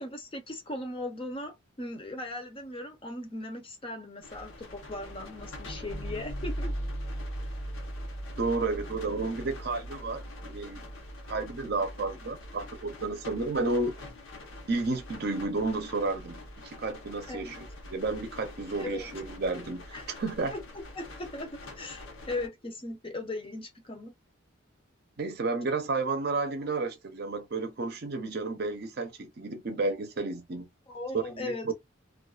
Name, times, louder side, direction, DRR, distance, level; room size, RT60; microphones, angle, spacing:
voice 1, 0.0-6.8 17.3-17.7 18.8-19.0 19.9-20.1 20.5-24.1 30.9-31.7, left 2 dB, 25° left, 0.6 m, -38 dB
sound 1, 4.2-22.5, equal, 85° left, 0.9 m, -41 dB
voice 2, 8.4-10.9 11.3-14.0 14.7-20.5 25.2-30.7 31.1-31.7, right 3 dB, 50° right, 0.6 m, -32 dB
2.3 x 2.3 x 2.3 m
head